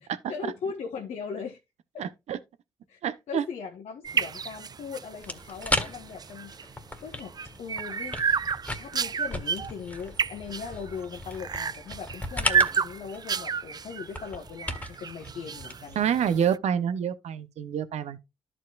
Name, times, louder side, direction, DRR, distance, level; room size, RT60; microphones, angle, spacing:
voice 1, 0.3-1.6 1.9-2.0 2.9-3.0 3.3-8.2 8.8-16.1, left 6 dB, 70° left, 1.2 m, -39 dB
voice 2, 2.0-2.4 3.0-3.4 16.0-18.2, right 8 dB, 70° right, 0.8 m, -27 dB
sound 1, 4.0-16.6, right 6 dB, 35° right, 0.3 m, -31 dB
sound 2, 5.2-16.4, left 1 dB, 15° left, 1.8 m, -36 dB
13.0 x 5.0 x 2.4 m
hypercardioid pair, 45°, 12 cm